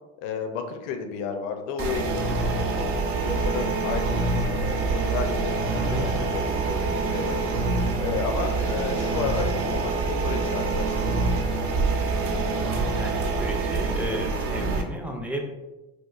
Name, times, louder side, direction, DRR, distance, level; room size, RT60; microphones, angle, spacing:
voice 1, 0.2-7.4 8.0-11.2 11.5-11.6, left 6 dB, 65° left, 6 dB, 0.6 m, -33 dB
sound 1, 1.8-14.8, right 3 dB, 45° right, 0.6 m, -26 dB
voice 2, 5.9-6.3 12.1-12.6 12.9-15.5, equal, 5° right, 1 dB, 0.4 m, -34 dB
4.4 x 2.3 x 2.4 m, 1.0 s
supercardioid pair, 110°, 32 cm